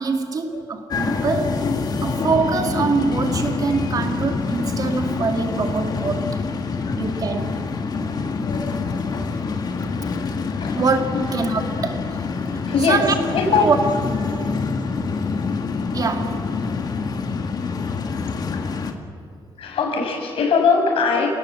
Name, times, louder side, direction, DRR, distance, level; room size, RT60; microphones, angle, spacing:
voice 1, 0.0-1.5 2.0-6.4 7.0-7.6 9.8-9.9 10.8-11.0 11.3-12.2 12.9-13.1 13.5-13.8 14.1-14.5 15.9-16.5, right 4 dB, 40° right, 5 dB, 2.3 m, -24 dB
sound 1, 0.9-18.9, left 4 dB, 45° left, 2.0 m, -26 dB
voice 2, 8.4-9.2 10.0-10.2 10.6-10.8 11.1-11.2 12.7-13.0 13.3-13.7 18.5-18.6 19.6-21.3, left 5 dB, 70° left, 2 dB, 6.0 m, -22 dB
29.5 x 18.0 x 7.9 m, 2.4 s
cardioid pair, 135°, 10 cm